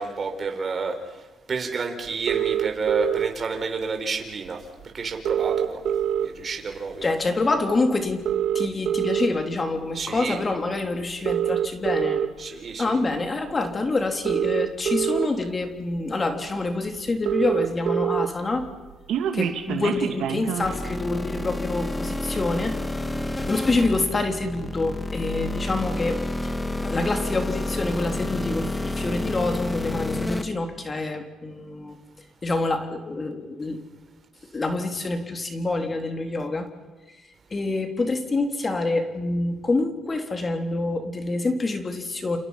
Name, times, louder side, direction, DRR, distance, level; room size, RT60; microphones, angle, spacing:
voice 1, 0.0-4.6 4.9-5.8 6.2-7.1 9.9-10.4 12.4-13.0, right 4 dB, 40° right, 4 dB, 4.6 m, -30 dB
sound 1, 2.3-3.3 4.5-4.6 4.8-4.9 5.1-6.5 7.0-7.3 8.1-9.3 10.0-10.2 11.1-12.3 13.5-13.6 14.1-15.3 15.9-16.0 16.3-16.4 16.7-16.8 17.0-18.3 18.6-20.7, right 10 dB, 80° right, 2.7 m, -25 dB
voice 2, 7.0-8.2 8.5-12.3 12.8-18.7 19.3-22.8 23.5-26.5 26.8-32.0 32.4-33.8 34.5-36.7 37.5-42.4, left 2 dB, 30° left, 5 dB, 3.4 m, -26 dB
sound 2, 20.6-30.4, left 2 dB, 15° left, 2.2 m, -29 dB
29.0 x 28.0 x 5.9 m, 1.3 s
cardioid pair, 90°, 0 cm